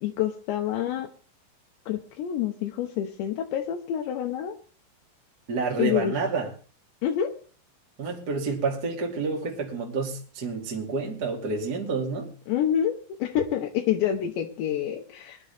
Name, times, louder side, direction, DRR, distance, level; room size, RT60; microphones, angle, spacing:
voice 1, 0.0-1.1 1.9-4.6 5.8-6.1 7.0-7.3 12.5-15.4, left 10 dB, 75° left, 2.9 m, -27 dB
voice 2, 5.5-6.5 8.0-12.3, right 4 dB, 35° right, 1.5 m, -29 dB
21.5 x 11.5 x 3.4 m
omnidirectional pair, 5.8 m